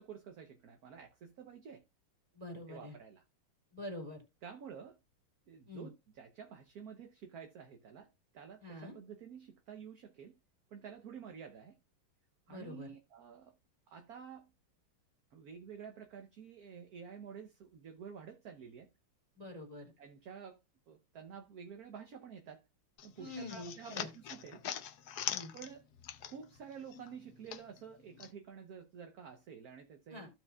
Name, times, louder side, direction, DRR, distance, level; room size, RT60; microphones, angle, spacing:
voice 1, 0.0-1.8 2.7-3.2 4.4-5.0 5.5-10.3 10.7-11.8 12.5-13.5 13.9-14.5 15.3-18.9 20.0-20.6 20.9-22.6 23.0-24.6 25.5-25.9 26.2-30.2, right 7 dB, 55° right, 1.2 m, -50 dB
voice 2, 2.3-2.9 3.7-4.2 5.7-5.9 8.6-8.9 12.5-12.9 19.4-19.9 23.2-24.1 25.3-25.5 30.1-30.3, left 2 dB, 20° right, 2.6 m, -45 dB
sound 1, 23.0-26.6 26.9-28.3, left 10 dB, 65° left, 1.0 m, -42 dB
15.0 x 5.5 x 2.4 m
omnidirectional pair, 2.3 m